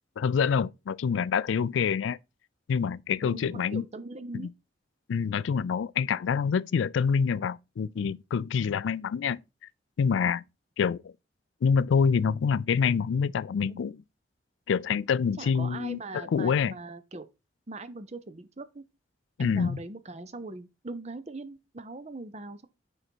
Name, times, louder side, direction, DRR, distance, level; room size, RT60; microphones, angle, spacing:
voice 1, 0.2-2.2 2.7-3.8 4.3-4.5 5.1-9.4 10.0-10.4 10.8-11.1 11.6-14.0 14.7-16.7 19.4-19.8, left 6 dB, 80° left, 0.3 m, -26 dB
voice 2, 3.2-4.5 15.4-17.3 17.7-18.8 19.4-22.7, right 2 dB, 35° right, 0.7 m, -41 dB
6.5 x 5.4 x 4.5 m
head